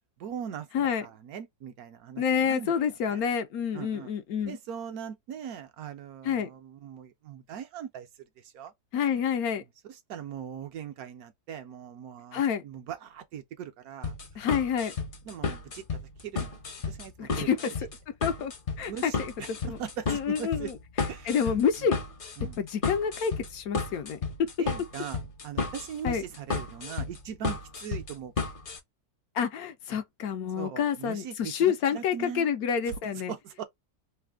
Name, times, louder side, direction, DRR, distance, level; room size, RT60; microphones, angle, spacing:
voice 1, 0.2-2.8 3.1-3.2 3.7-4.1 4.4-8.7 9.6-14.1 15.2-15.8 16.2-16.6 16.9-17.5 18.9-20.7 21.1-21.5 21.8-21.9 22.4-22.6 24.6-28.5 30.6-32.5 32.9-33.6, right 8 dB, 70° right, 1.0 m, -40 dB
voice 2, 0.7-1.0 2.2-4.6 6.2-6.5 8.9-9.6 12.3-12.6 14.4-14.9 17.2-17.7 18.2-18.5 18.8-19.3 19.7-19.8 20.1-20.7 21.2-22.0 22.6-24.2 26.0-26.2 29.3-33.3, left 7 dB, 70° left, 1.0 m, -28 dB
sound 1, 14.0-28.8, left 4 dB, 45° left, 0.7 m, -33 dB
3.3 x 2.1 x 3.4 m
omnidirectional pair, 1.7 m